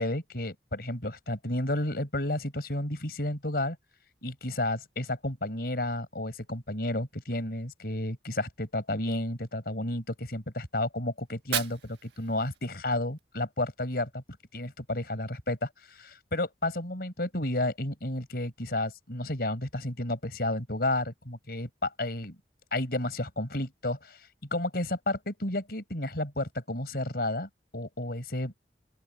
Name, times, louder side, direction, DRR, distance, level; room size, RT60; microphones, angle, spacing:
voice 1, 0.0-3.8 4.2-14.2 14.5-22.4 22.7-24.2 24.5-28.6, left 1 dB, 60° left, 5.1 m, -32 dB
Fire, 11.2-13.2, right 10 dB, 75° right, 1.4 m, -37 dB
open air
head